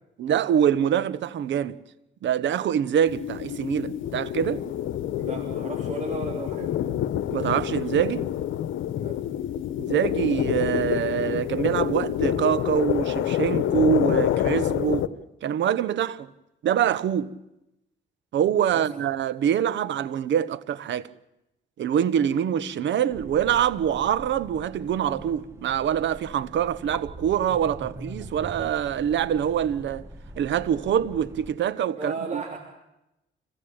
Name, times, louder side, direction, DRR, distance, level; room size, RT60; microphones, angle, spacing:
voice 1, 0.2-1.8 2.2-4.6 7.3-8.3 9.8-15.1 15.4-16.3 16.6-17.3 18.3-21.1 21.8-30.1 30.4-32.4, right 9 dB, 70° right, 1.1 m, -25 dB
sound 1, 3.1-15.1, left 11 dB, 80° left, 1.1 m, -27 dB
voice 2, 5.2-6.8 8.9-9.2 18.7-18.9 32.0-32.6, right 3 dB, 35° right, 3.4 m, -34 dB
sound 2, 23.1-31.5, right 1 dB, 15° right, 1.7 m, -42 dB
25.5 x 16.5 x 8.7 m
cardioid pair, 90°, 20 cm